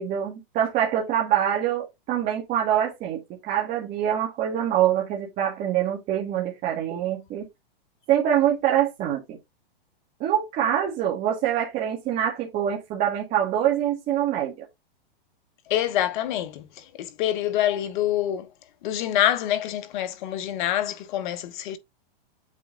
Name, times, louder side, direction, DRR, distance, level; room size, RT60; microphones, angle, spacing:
voice 1, 0.0-7.4 8.1-9.4 10.2-14.5, right 10 dB, 30° right, 1.7 m, -25 dB
voice 2, 15.7-18.5 18.8-21.8, left 12 dB, 55° left, 1.2 m, -26 dB
7.9 x 3.7 x 3.7 m
hypercardioid pair, 145°, 30 cm